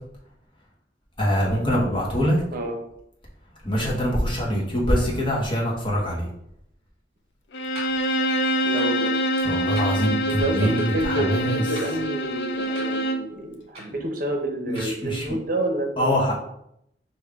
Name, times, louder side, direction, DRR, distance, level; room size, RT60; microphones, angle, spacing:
voice 1, 1.2-2.4 3.6-6.3 9.4-11.6 14.7-15.2 16.0-16.3, equal, 30° left, -4 dB, 1.2 m, -24 dB
Bowed string instrument, 7.5-13.3, equal, 75° left, 0.5 m, -25 dB
sound 1, 7.7-7.9 8.7-9.0 9.7-9.9 10.7-10.9 11.7-12.2 12.8-12.9 13.7-14.0 14.8-14.9, right 1 dB, 35° right, 1.5 m, -40 dB
voice 2, 8.6-9.1 10.3-16.3, right 1 dB, 55° right, 3 dB, 0.7 m, -29 dB
5.4 x 2.6 x 3.5 m, 0.75 s
head